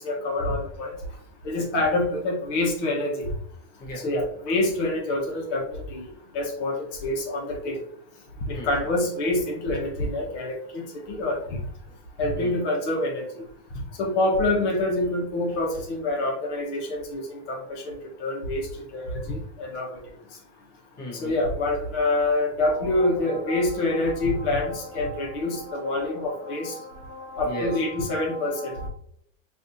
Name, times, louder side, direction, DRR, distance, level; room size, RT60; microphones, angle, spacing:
voice 1, 0.0-0.9 1.4-3.3 4.0-6.1 6.3-7.8 8.5-11.4 12.2-13.2 14.0-18.6 18.9-19.9 21.2-26.7 27.4-28.7, left 2 dB, 70° left, 0 dB, 1.4 m, -26 dB
voice 2, 3.8-4.1 4.5-4.6 8.5-8.7 12.3-12.6 15.5-15.6 21.0-21.4 22.5-28.9, equal, 25° left, -3 dB, 1.4 m, -39 dB
5.6 x 2.7 x 2.7 m, 0.69 s
supercardioid pair, 150°, 37 cm